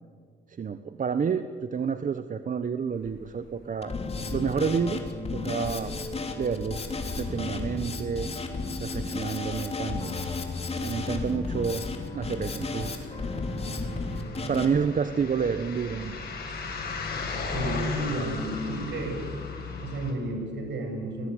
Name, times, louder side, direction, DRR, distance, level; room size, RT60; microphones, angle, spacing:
voice 1, 0.6-4.0 4.3-5.1 5.3-5.9 6.4-6.8 7.2-8.3 8.8-10.1 10.8-11.9 12.1-13.1 14.5-16.2, right 6 dB, 40° right, 10 dB, 1.1 m, -29 dB
sound 1, 3.0-3.4 3.7-4.8 5.1-5.4 5.6-20.1, left 4 dB, 50° left, 7.0 m, -38 dB
Drum kit, 3.8-14.6, left 3 dB, 30° left, 3.5 m, -33 dB
voice 2, 17.5-19.2 19.8-21.3, right 2 dB, 65° right, 4 dB, 7.6 m, -32 dB
29.0 x 21.5 x 9.6 m, 2.1 s
cardioid pair, 90°, 20 cm